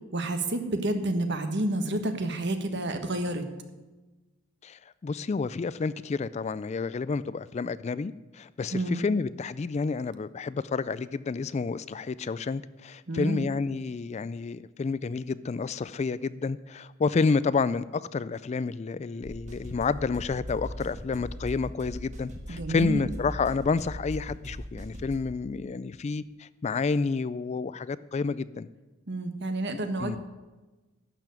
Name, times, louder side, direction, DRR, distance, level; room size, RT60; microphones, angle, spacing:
voice 1, 0.1-3.4 8.7-9.0 13.1-13.5 22.5-23.1 29.1-30.2, right 1 dB, 55° right, 8 dB, 1.4 m, -29 dB
voice 2, 4.6-28.7 30.0-30.2, left 4 dB, 35° left, 17 dB, 0.3 m, -30 dB
sound 1, 19.2-25.2, equal, 35° right, 1.6 m, -39 dB
12.0 x 7.0 x 9.5 m, 1.2 s
head